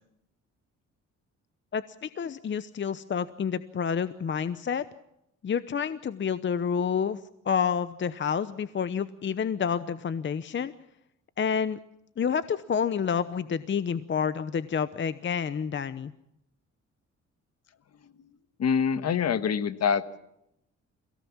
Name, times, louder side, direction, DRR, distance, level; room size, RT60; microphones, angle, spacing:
voice 1, 1.7-4.8 5.4-7.2 7.4-10.7 11.4-11.8 12.2-16.1, left 7 dB, 40° left, 14 dB, 0.9 m, -29 dB
voice 2, 18.6-20.2, left 7 dB, 55° left, 12 dB, 1.6 m, -26 dB
29.0 x 17.5 x 7.3 m, 0.82 s
cardioid pair, 90°, 30 cm